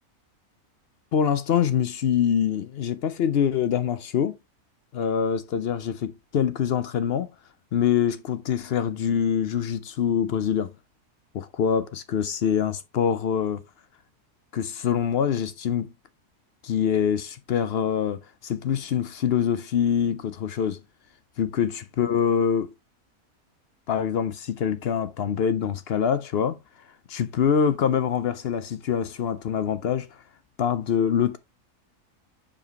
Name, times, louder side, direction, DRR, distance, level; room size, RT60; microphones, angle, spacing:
voice 1, 1.1-4.4 4.9-7.3 7.7-10.7 11.3-13.6 14.5-15.9 16.6-20.8 21.4-22.7 23.9-26.6 27.1-30.1 30.6-31.4, left 8 dB, 60° left, 0.6 m, -25 dB
7.0 x 5.0 x 2.9 m
omnidirectional pair, 1.6 m